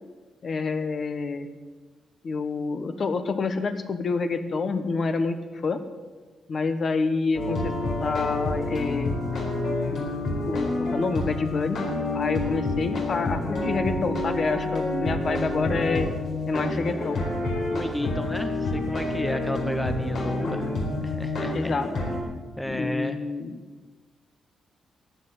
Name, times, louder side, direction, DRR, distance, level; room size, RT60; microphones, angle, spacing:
voice 1, 0.4-1.5 2.2-5.4 5.6-5.8 6.5-7.7 8.0-9.2 10.4-11.8 12.1-16.1 16.5-17.2 21.5-21.9 22.6-23.7, left 4 dB, 40° left, 9 dB, 1.2 m, -27 dB
sound 1, 7.3-22.2, left 2 dB, 65° left, 4.2 m, -28 dB
voice 2, 17.7-20.7 21.0-21.7 22.6-23.2, left 1 dB, 5° left, 8 dB, 0.7 m, -33 dB
14.5 x 10.0 x 8.2 m, 1.3 s
cardioid pair, 140°, 0 cm